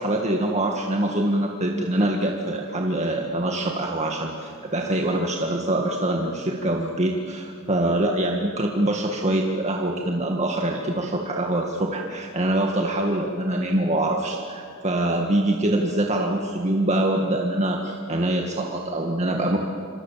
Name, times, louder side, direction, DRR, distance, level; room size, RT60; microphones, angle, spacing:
voice 1, 0.0-19.6, right 1 dB, 30° right, 1 dB, 1.9 m, -24 dB
27.5 x 26.5 x 7.5 m, 2.4 s
head